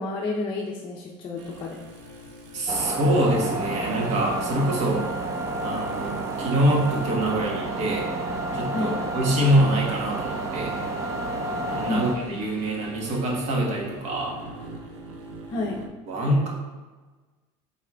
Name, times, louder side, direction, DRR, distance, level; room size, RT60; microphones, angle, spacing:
voice 1, 0.0-1.8 8.7-8.9 11.9-12.0 12.3-12.4 15.5-15.8, left 2 dB, 35° left, -4 dB, 0.6 m, -30 dB
sound 1, 1.4-15.9, right 1 dB, 90° right, 0.7 m, -43 dB
voice 2, 2.5-5.1 5.6-8.1 8.5-10.8 11.7-14.4 16.1-16.5, right 1 dB, 50° right, -1 dB, 1.2 m, -25 dB
sound 2, 2.7-12.2, right 2 dB, 20° right, 0.4 m, -30 dB
sound 3, 4.2-12.0, left 1 dB, ahead, 0.9 m, -43 dB
4.7 x 4.1 x 2.3 m, 1.3 s
supercardioid pair, 120°, 15 cm